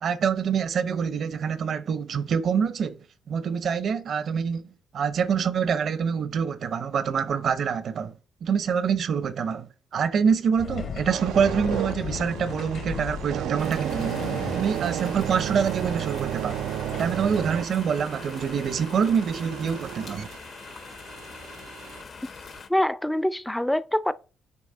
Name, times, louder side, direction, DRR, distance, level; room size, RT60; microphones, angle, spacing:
voice 1, 0.0-3.0 3.3-8.1 8.4-14.2 14.5-16.6 17.0-20.3, right 6 dB, 60° right, 0.7 m, -26 dB
sound 1, 10.6-17.4, left 6 dB, 65° left, 1.8 m, -37 dB
sound 2, 11.1-22.0 22.6-22.8, right 11 dB, 85° right, 0.3 m, -33 dB
sound 3, 13.6-22.7, left 5 dB, 50° left, 0.9 m, -43 dB
voice 2, 22.7-24.1, left 1 dB, 5° left, 0.4 m, -24 dB
8.4 x 4.7 x 3.8 m
cardioid pair, 90°, 0 cm